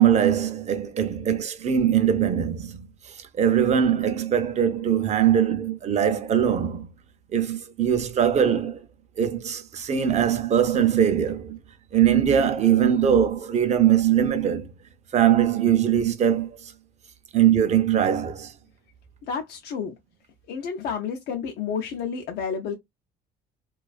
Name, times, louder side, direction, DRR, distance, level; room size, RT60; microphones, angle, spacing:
voice 1, 0.0-6.9 7.3-8.8 9.2-11.6 11.9-14.7 15.1-16.7 17.3-18.5, right 9 dB, 40° right, 0.5 m, -21 dB
voice 2, 19.3-19.9 20.5-22.7, left 6 dB, 80° left, 0.5 m, -30 dB
2.4 x 2.3 x 2.3 m
cardioid pair, 110°, 17 cm